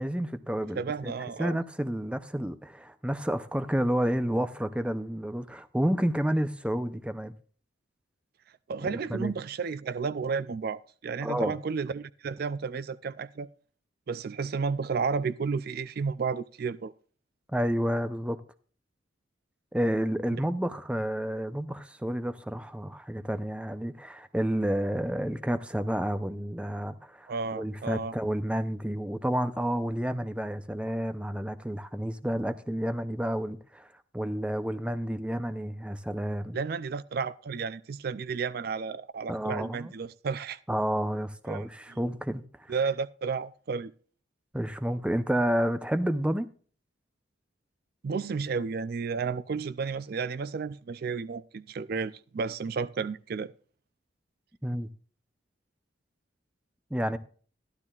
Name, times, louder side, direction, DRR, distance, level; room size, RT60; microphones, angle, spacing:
voice 1, 0.0-1.1 1.4-7.3 8.9-9.3 11.2-11.5 17.5-18.4 19.7-33.9 34.1-36.6 39.3-39.9 40.7-42.8 44.5-46.5 54.6-54.9 56.9-57.2, equal, 5° right, 0.6 m, -30 dB
voice 2, 0.8-1.6 8.7-13.5 14.1-16.9 20.3-20.4 27.3-28.2 36.5-40.6 41.5-42.2 42.7-43.9 48.0-53.5, right 5 dB, 55° right, 0.4 m, -32 dB
13.5 x 12.0 x 2.4 m
head